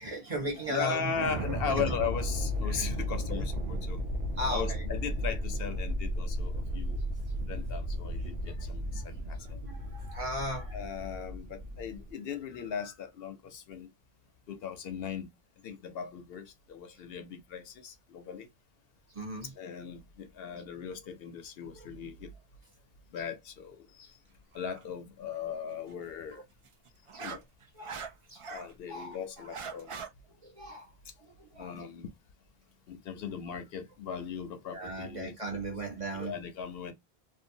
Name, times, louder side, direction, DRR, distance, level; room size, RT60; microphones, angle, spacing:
voice 1, 0.0-1.1 1.4-1.9 2.7-2.9 3.3-3.5 4.4-4.9 7.3-7.4 8.5-10.8 19.1-19.5 21.7-21.9 25.9-26.1 26.3-26.4 27.1-27.2 27.8-28.4 28.9-29.5 30.4-30.9 31.2-31.7 34.7-36.4, right 1 dB, 35° right, 0.8 m, -38 dB
voice 2, 0.7-4.0 4.5-7.0 7.5-9.6 10.7-13.9 14.5-15.3 15.6-18.5 19.6-22.3 23.1-24.2 24.5-26.4 27.2-27.4 28.5-29.9 31.6-32.1 32.9-35.6 36.1-36.9, left 7 dB, 75° left, 0.8 m, -38 dB
sound 1, 1.0-12.1, equal, 80° right, 0.8 m, -34 dB
sound 2, 24.5-24.8 26.6-28.7 29.1-30.1, right 5 dB, 55° right, 0.3 m, -42 dB
2.7 x 2.2 x 2.6 m
omnidirectional pair, 1.0 m